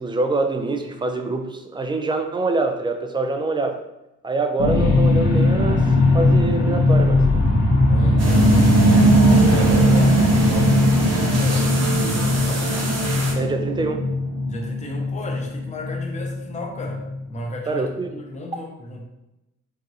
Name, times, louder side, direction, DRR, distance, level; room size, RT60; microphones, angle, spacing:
voice 1, 0.0-3.8 4.2-7.3 13.4-14.1 17.7-18.1, right 3 dB, 15° right, 6 dB, 0.4 m, -25 dB
sound 1, 4.6-17.2 17.7-17.8, left 1 dB, 90° left, 1.1 m, -18 dB
voice 2, 7.9-12.7 14.4-19.0, left 1 dB, 25° left, 0 dB, 0.7 m, -34 dB
sound 2, 8.2-13.3, right 2 dB, 60° right, 1.1 m, -27 dB
4.7 x 2.5 x 2.8 m, 0.92 s
cardioid pair, 90°, 30 cm